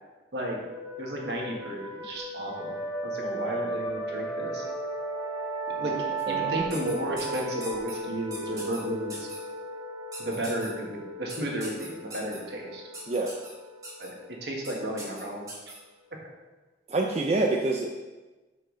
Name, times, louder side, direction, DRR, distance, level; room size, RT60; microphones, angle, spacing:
sound 1, 0.6-16.0, right 2 dB, 25° left, 1.9 m, -36 dB
voice 1, 1.0-2.7 3.0-4.6 5.7-5.9 6.3-9.3 10.2-12.8 14.0-14.1 14.4-15.5, right 1 dB, 75° right, -1 dB, 1.5 m, -33 dB
voice 2, 3.2-3.7 6.1-6.5 13.1-13.3 16.9-17.9, right 2 dB, 35° right, 1 dB, 0.5 m, -28 dB
sound 2, 6.7-8.0 8.3-8.8 9.1-9.4 10.1-10.7 11.3-12.4 12.9-13.5 13.8-14.1 14.6-14.7 15.0-15.8, right 1 dB, 20° right, 1.6 m, -41 dB
6.4 x 5.9 x 3.8 m, 1.2 s
head